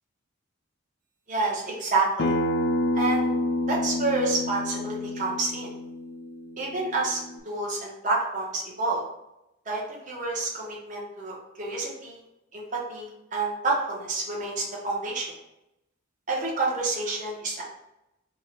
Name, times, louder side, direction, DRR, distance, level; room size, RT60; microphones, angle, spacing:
voice 1, 1.3-2.4 2.9-3.3 3.7-5.7 6.6-9.0 9.7-12.2 12.5-15.3 16.3-17.6, right 3 dB, 35° right, -4 dB, 0.8 m, -29 dB
Acoustic guitar, 2.2-7.4, left 1 dB, 50° left, 0.4 m, -28 dB
3.6 x 2.2 x 4.3 m, 0.88 s
head